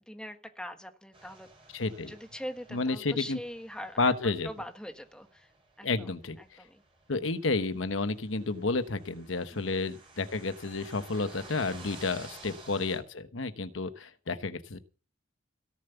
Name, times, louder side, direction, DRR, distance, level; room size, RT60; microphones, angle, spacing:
voice 1, 0.1-1.5 2.1-4.1 4.4-5.5 5.8-6.1 6.4-6.8 12.4-12.6, equal, 5° left, 7 dB, 1.3 m, -42 dB
sound 1, 1.1-13.0, right 3 dB, 25° right, 6.1 m, -53 dB
voice 2, 1.7-2.1 2.7-3.4 4.0-4.5 5.8-6.4 7.1-14.8, left 3 dB, 80° left, 11 dB, 1.1 m, -31 dB
17.0 x 7.5 x 6.9 m, 0.37 s
head